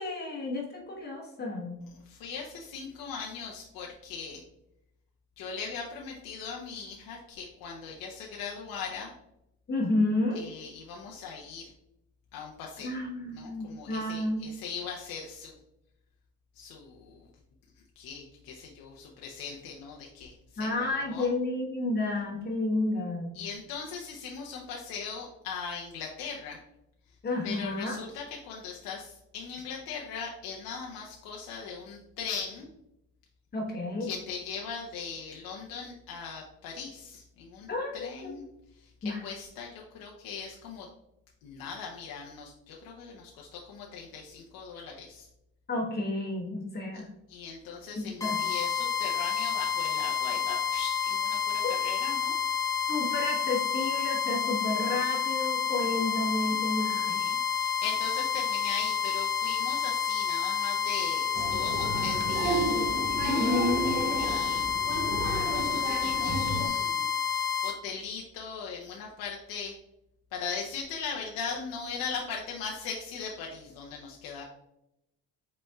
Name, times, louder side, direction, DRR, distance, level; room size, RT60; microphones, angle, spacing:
voice 1, 0.0-1.8 9.7-10.4 12.8-14.5 20.6-23.3 27.2-28.1 33.5-34.1 37.7-38.3 39.0-39.2 45.7-47.1 48.0-48.4 51.6-51.7 52.9-57.1 63.2-63.9, left 2 dB, 25° left, -1 dB, 1.2 m, -31 dB
voice 2, 2.1-4.4 5.4-9.1 10.3-11.7 12.3-12.9 13.3-15.5 16.6-17.3 18.0-20.3 20.6-21.3 23.3-26.6 27.4-32.7 34.0-37.7 37.9-38.4 38.8-38.9 39.2-40.9 41.4-45.3 47.3-52.4 56.4-56.6 57.0-62.8 64.2-64.6 64.9-65.0 65.5-67.1 67.6-69.7 70.3-74.4, left 5 dB, 70° left, -1 dB, 0.8 m, -39 dB
sound 1, 48.2-67.7, left 7 dB, 10° left, 1.0 m, -29 dB
Applause, 61.3-66.7, right 3 dB, 30° right, 0.6 m, -32 dB
5.3 x 4.2 x 2.3 m, 0.84 s
cardioid pair, 145°, 36 cm